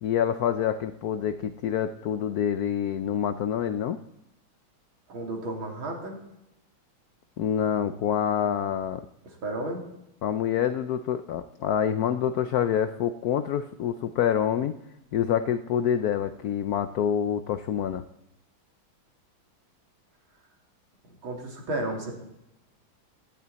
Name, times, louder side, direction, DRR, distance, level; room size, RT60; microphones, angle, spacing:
voice 1, 0.0-4.0 7.4-9.0 10.2-14.7 15.1-18.0, left 9 dB, 90° left, 11 dB, 0.8 m, -26 dB
voice 2, 5.1-6.2 9.2-9.8 21.2-22.2, right 2 dB, 75° right, 1 dB, 3.2 m, -33 dB
17.0 x 12.0 x 4.1 m, 0.85 s
omnidirectional pair, 2.3 m